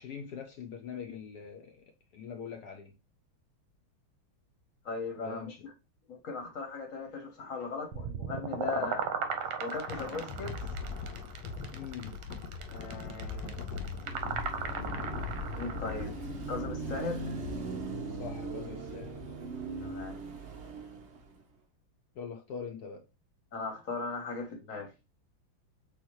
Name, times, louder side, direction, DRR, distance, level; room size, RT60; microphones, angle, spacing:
voice 1, 0.0-1.8 2.1-2.9 5.2-5.6 8.7-8.9 11.7-12.1 18.1-19.2 22.2-23.0, left 7 dB, 70° left, 0.9 m, -43 dB
voice 2, 4.8-5.7 6.1-9.0 9.6-10.6 12.7-13.6 15.6-16.1 16.5-17.2 19.8-20.2 23.5-24.9, left 4 dB, 50° left, 1.1 m, -38 dB
sound 1, 7.9-16.0, right 7 dB, 85° right, 1.6 m, -37 dB
Thunder, 9.5-20.1, left 5 dB, 85° left, 1.5 m, -41 dB
Car passing by / Traffic noise roadway noise / Engine, 14.0-21.4, right 4 dB, 60° right, 0.7 m, -40 dB
6.9 x 2.3 x 3.0 m
omnidirectional pair, 2.2 m